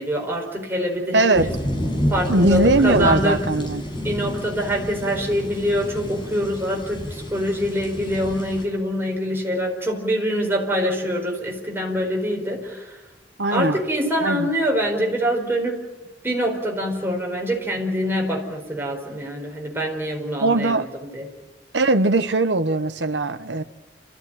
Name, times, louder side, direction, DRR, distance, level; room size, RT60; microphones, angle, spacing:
voice 1, 0.0-1.5 2.1-3.5 4.0-13.0 13.5-15.8 16.2-20.8 21.1-21.3, equal, 15° right, 0 dB, 4.6 m, -25 dB
voice 2, 1.1-1.5 2.3-3.8 13.4-13.8 14.2-14.5 20.4-20.9 21.7-23.6, right 2 dB, 85° right, 10 dB, 1.2 m, -20 dB
sound 1, 1.3-8.7, equal, 25° left, 6.1 m, -29 dB
28.0 x 14.5 x 9.1 m, 1.1 s
head